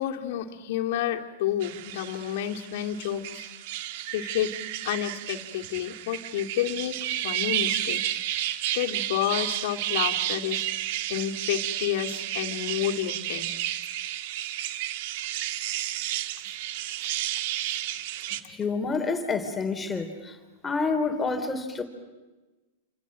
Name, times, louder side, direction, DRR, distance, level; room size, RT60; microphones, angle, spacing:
voice 1, 0.0-3.5 4.1-4.5 4.8-7.0 7.2-10.7 11.1-13.5, left 11 dB, 60° left, 4 dB, 2.5 m, -30 dB
sound 1, 1.6-18.4, right 13 dB, 55° right, 1.5 m, -32 dB
voice 2, 18.5-20.4 20.6-21.8, left 4 dB, 15° left, 6 dB, 3.4 m, -28 dB
29.0 x 27.5 x 6.4 m, 1.2 s
hypercardioid pair, 105°, 0 cm